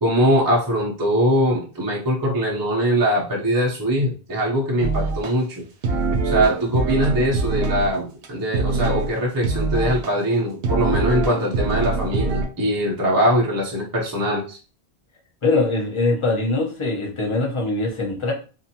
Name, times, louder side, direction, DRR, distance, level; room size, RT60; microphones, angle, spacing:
voice 1, 0.0-5.6 6.2-14.6, equal, 25° right, -2 dB, 0.6 m, -22 dB
sound 1, 4.8-5.3 5.8-7.9 8.2-8.3 8.5-9.1 9.4-10.1 10.6-12.4, right 3 dB, 85° right, 0.9 m, -23 dB
voice 2, 15.4-18.3, left 3 dB, 30° left, 0 dB, 0.8 m, -22 dB
2.6 x 2.4 x 2.8 m, 0.36 s
omnidirectional pair, 1.1 m